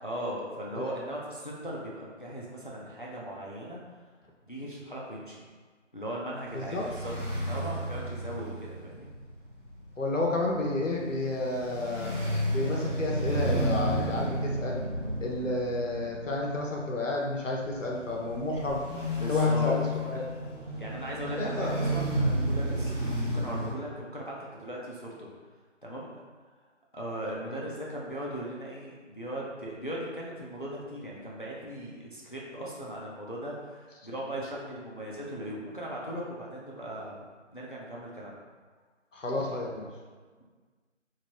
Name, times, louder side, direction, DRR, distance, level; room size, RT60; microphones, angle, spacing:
voice 1, 0.0-3.8 4.4-5.5 5.9-7.1 7.4-9.1 19.2-19.7 20.8-22.9 23.2-25.3 25.8-26.2 26.9-38.4, equal, 45° left, -4 dB, 0.4 m, -38 dB
voice 2, 6.5-6.9 10.0-12.1 12.5-14.8 15.2-18.8 19.3-20.2 21.4-21.8 27.4-27.6 39.1-39.9, left 2 dB, 85° left, -2 dB, 0.7 m, -31 dB
sound 1, 6.5-23.7, equal, 45° right, 1.1 m, -32 dB
2.9 x 2.6 x 2.9 m, 1.5 s
figure-of-eight pair, 170°, 37 cm